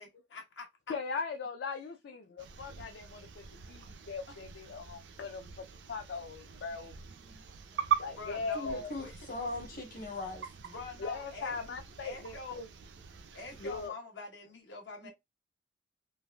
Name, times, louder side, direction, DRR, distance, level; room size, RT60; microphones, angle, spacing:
voice 1, 0.0-0.9 4.3-4.4 8.2-9.1 10.6-11.8 12.0-12.6 13.3-15.1, left 4 dB, 85° left, 1.1 m, -45 dB
voice 2, 0.9-6.9 8.0-8.9 11.0-12.7 13.6-13.9, left 4 dB, 70° left, 0.4 m, -39 dB
sound 1, 2.4-13.9, right 8 dB, 75° right, 0.4 m, -41 dB
voice 3, 8.5-10.5 15.0-15.1, left 2 dB, 55° left, 1.1 m, -40 dB
3.2 x 2.4 x 2.2 m
head